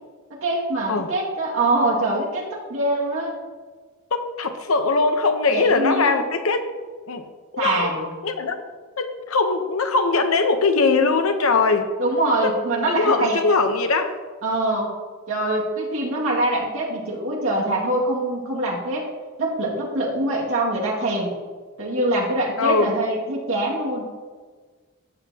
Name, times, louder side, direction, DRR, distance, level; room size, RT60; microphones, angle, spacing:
voice 1, 0.3-3.3 5.5-6.1 7.6-8.2 12.0-13.4 14.4-14.9 15.3-19.1 19.4-21.3 21.8-24.1, right 1 dB, 70° right, -3 dB, 2.2 m, -24 dB
voice 2, 4.1-6.7 7.1-7.2 7.5-8.6 9.0-11.9 12.4-12.6 12.9-14.1 22.6-22.9, left 4 dB, 70° left, 7 dB, 0.9 m, -21 dB
13.5 x 8.3 x 2.9 m, 1.5 s
head